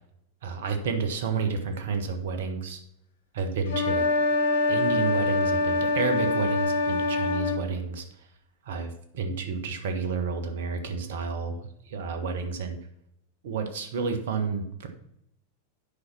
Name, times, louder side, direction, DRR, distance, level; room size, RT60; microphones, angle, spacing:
voice 1, 0.4-2.8 3.3-4.1 4.7-8.0 8.6-12.8 13.4-14.9, right 5 dB, 60° right, 6 dB, 1.4 m, -30 dB
sound 1, 3.7-7.6, left 3 dB, 65° left, 1.2 m, -25 dB
8.5 x 5.9 x 6.0 m, 0.75 s
figure-of-eight pair, 90°, 0 cm